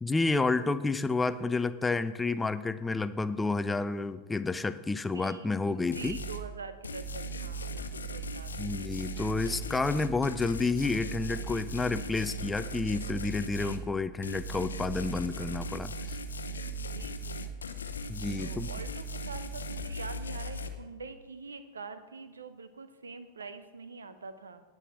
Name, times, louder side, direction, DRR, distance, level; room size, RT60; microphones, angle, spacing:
voice 1, 0.0-6.2 8.6-16.2 18.1-18.7, left 3 dB, 10° left, 13 dB, 0.5 m, -30 dB
voice 2, 5.1-8.8 13.4-13.9 16.8-17.5 18.4-24.6, right 4 dB, 70° right, 11 dB, 0.9 m, -45 dB
sound 1, 5.9-6.4 6.8-13.8 14.2-20.7, right 1 dB, 75° left, 0.8 m, -38 dB
19.0 x 7.7 x 3.6 m, 1.3 s
figure-of-eight pair, 90°, 0 cm